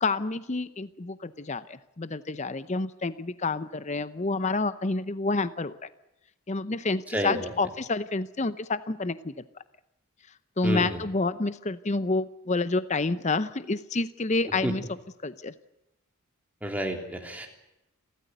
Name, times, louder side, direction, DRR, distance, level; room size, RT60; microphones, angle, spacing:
voice 1, 0.0-5.8 6.5-9.4 10.6-15.5, left 3 dB, 30° left, 14 dB, 0.7 m, -29 dB
voice 2, 7.1-7.5 10.6-11.0 14.6-14.7 16.6-17.5, equal, 5° right, 3 dB, 3.2 m, -30 dB
29.5 x 13.5 x 9.2 m, 0.90 s
head